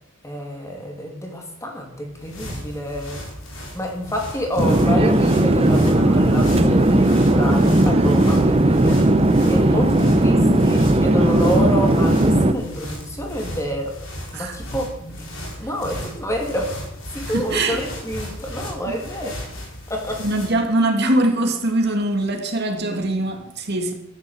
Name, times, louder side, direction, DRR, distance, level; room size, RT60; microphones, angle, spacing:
voice 1, 0.2-3.2 3.7-9.0 9.5-14.0 14.3-15.3 15.6-16.9 17.1-19.4 19.9-20.2 22.9-23.0, equal, 15° left, 3.0 m, -28 dB
sound 1, 1.9-20.7, equal, 75° left, 5.3 m, -36 dB
Conversation / Chatter / Fixed-wing aircraft airplane, 4.6-12.5, right 1 dB, 30° right, 0.9 m, -16 dB
voice 2, 17.2-17.8 20.2-23.9, right 1 dB, 55° right, 2.4 m, -22 dB
13.0 x 11.0 x 7.7 m
head